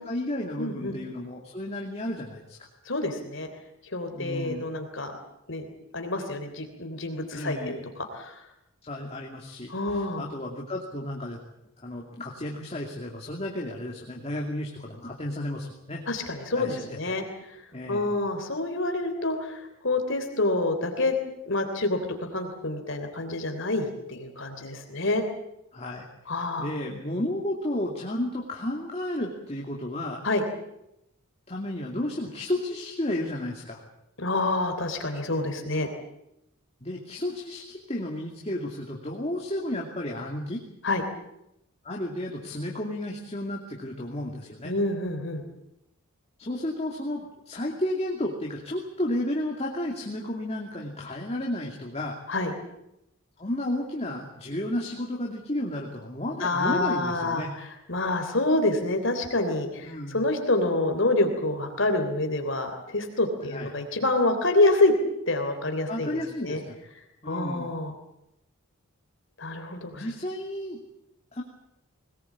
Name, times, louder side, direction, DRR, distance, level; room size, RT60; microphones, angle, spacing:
voice 1, 0.0-2.6 4.1-4.7 7.3-7.9 8.8-11.4 11.8-16.0 16.5-17.2 17.7-18.1 25.7-26.0 26.6-30.2 31.5-33.8 36.8-40.6 41.8-44.7 46.4-52.2 53.4-57.5 59.8-60.2 63.5-63.7 65.9-66.8 67.2-67.7 69.9-70.8 71.3-71.4, left 1 dB, 30° left, 0 dB, 2.6 m, -32 dB
voice 2, 0.6-1.0 2.9-3.5 3.9-5.1 5.5-5.7 5.9-7.8 8.1-8.4 9.7-10.3 16.1-17.6 17.9-21.2 21.5-25.2 26.3-26.7 30.2-30.4 34.2-35.9 40.8-41.0 44.6-45.4 52.3-52.5 56.4-64.9 65.3-66.6 67.3-67.9 69.4-70.1, left 2 dB, 55° left, 5 dB, 3.3 m, -27 dB
22.0 x 20.0 x 8.5 m, 0.83 s
head